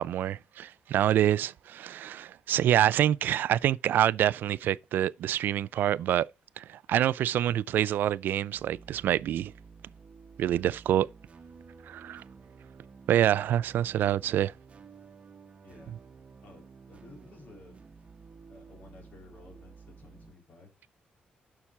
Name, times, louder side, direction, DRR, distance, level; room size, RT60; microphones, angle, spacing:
voice 1, 0.0-6.3 6.6-9.5 10.4-11.1 11.9-12.2 13.1-14.5, right 11 dB, 80° right, 0.3 m, -26 dB
sound 1, 8.5-20.3, right 5 dB, 40° right, 1.0 m, -52 dB
voice 2, 15.6-16.0 16.4-17.8 18.5-20.9, left 3 dB, 60° left, 2.9 m, -54 dB
7.1 x 5.8 x 4.8 m
cardioid pair, 100°, 3 cm